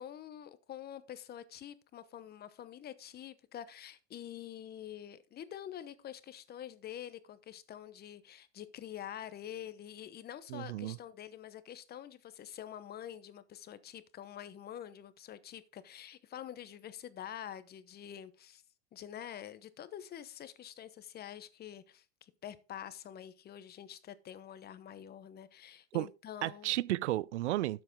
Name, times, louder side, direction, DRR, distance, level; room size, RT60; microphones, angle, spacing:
voice 1, 0.0-18.6 18.9-26.7, left 10 dB, 30° left, 1.0 m, -47 dB
voice 2, 10.5-11.0 25.9-26.1 26.4-27.8, right 16 dB, 90° right, 0.6 m, -33 dB
12.0 x 7.7 x 3.7 m
supercardioid pair, 120°, 34 cm